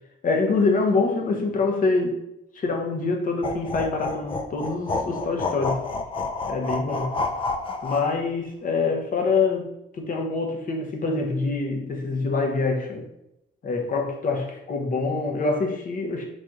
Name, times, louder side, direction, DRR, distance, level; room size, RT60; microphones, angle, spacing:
voice 1, 0.2-2.2 2.5-5.8 6.5-7.1 7.8-13.0 13.6-16.3, left 3 dB, 45° left, 1 dB, 0.7 m, -25 dB
sound 1, 3.4-8.2, left 3 dB, 25° left, 0.3 m, -29 dB
3.9 x 2.9 x 2.4 m, 0.87 s
cardioid pair, 90°, 20 cm